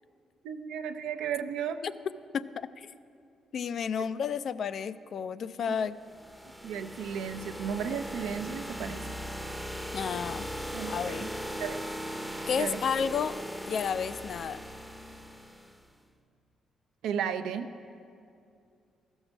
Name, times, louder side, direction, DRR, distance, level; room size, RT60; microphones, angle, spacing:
voice 1, 0.4-1.8 4.0-4.1 5.6-5.8 6.6-9.0 10.7-11.2 11.6-11.8 12.6-12.8 17.0-17.7, right 8 dB, 90° right, 8 dB, 0.5 m, -34 dB
voice 2, 2.3-2.9 3.5-6.0 9.9-10.5 10.9-11.3 12.5-13.3 13.7-14.6, left 7 dB, 60° left, 14 dB, 0.3 m, -31 dB
sound 1, 6.0-15.8, equal, 5° left, 0.6 m, -39 dB
14.0 x 6.3 x 6.3 m, 2.5 s
cardioid pair, 90°, 0 cm